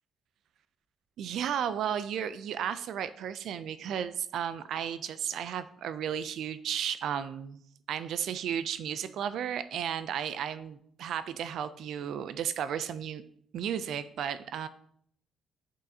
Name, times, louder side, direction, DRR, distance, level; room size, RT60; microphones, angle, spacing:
voice 1, 1.2-7.6 7.9-13.2 13.5-14.7, right 9 dB, 75° right, 13 dB, 0.3 m, -34 dB
6.5 x 6.2 x 2.7 m, 0.66 s
cardioid pair, 110°, 0 cm